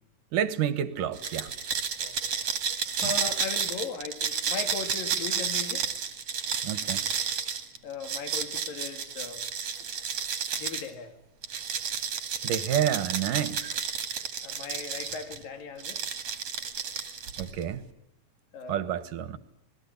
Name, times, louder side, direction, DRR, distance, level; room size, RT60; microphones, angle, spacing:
voice 1, 0.3-1.5 3.0-3.1 6.6-7.1 12.4-13.8 17.4-17.8 18.7-19.4, right 10 dB, 75° right, 2.9 m, -29 dB
sound 1, 1.1-10.9 11.4-15.4 15.8-17.6, right 7 dB, 50° right, 3.0 m, -31 dB
voice 2, 3.0-5.9 7.8-9.4 9.8-9.9 10.6-11.1 14.4-16.2 18.5-18.9, left 5 dB, 80° left, 4.2 m, -38 dB
27.0 x 19.5 x 8.5 m
omnidirectional pair, 4.0 m